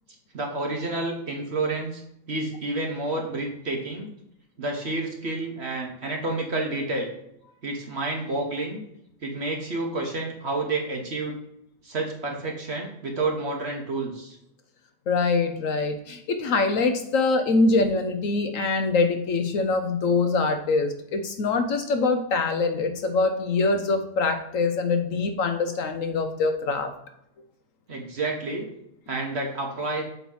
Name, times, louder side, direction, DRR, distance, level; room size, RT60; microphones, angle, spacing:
voice 1, 0.3-2.0 2.3-4.1 4.6-7.1 7.6-8.8 9.2-11.4 11.8-14.4 27.9-28.7 29.1-30.0, right 2 dB, 45° right, 1 dB, 1.2 m, -29 dB
voice 2, 15.1-26.9, left 3 dB, 65° left, 7 dB, 0.9 m, -24 dB
8.0 x 3.0 x 5.4 m, 0.79 s
omnidirectional pair, 1.8 m